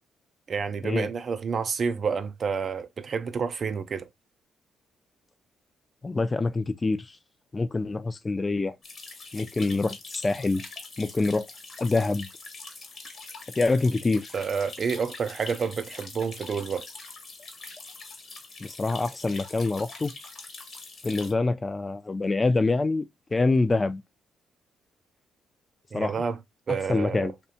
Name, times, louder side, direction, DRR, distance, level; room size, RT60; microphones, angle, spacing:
voice 1, 0.5-4.1 14.3-16.9 25.9-26.4 26.7-27.3, right 6 dB, 50° right, 0.4 m, -29 dB
voice 2, 6.0-7.1 7.5-8.7 9.3-10.6 11.0-11.5 11.8-12.3 13.6-14.3 18.6-20.1 21.0-23.1 23.3-24.0 25.9-26.2 26.9-27.3, left 3 dB, 25° left, 0.4 m, -25 dB
sound 1, 8.8-21.3, left 3 dB, 50° left, 1.0 m, -43 dB
2.7 x 2.2 x 2.6 m
supercardioid pair, 60°, 0 cm